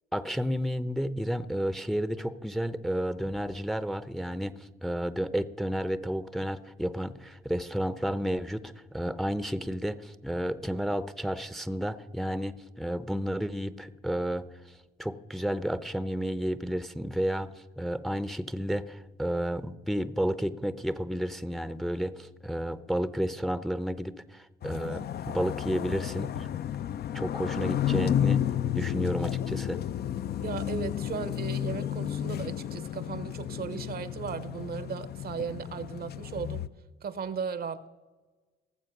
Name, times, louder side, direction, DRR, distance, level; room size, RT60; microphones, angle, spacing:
voice 1, 0.1-26.5 27.1-28.4 28.7-29.8, equal, ahead, 14 dB, 0.6 m, -31 dB
sound 1, 24.6-36.7, left 10 dB, 55° left, 0.5 m, -32 dB
voice 2, 30.4-36.6 37.0-37.9, right 6 dB, 50° right, 16 dB, 0.8 m, -36 dB
18.0 x 7.4 x 6.0 m, 1.3 s
cardioid pair, 90°, 20 cm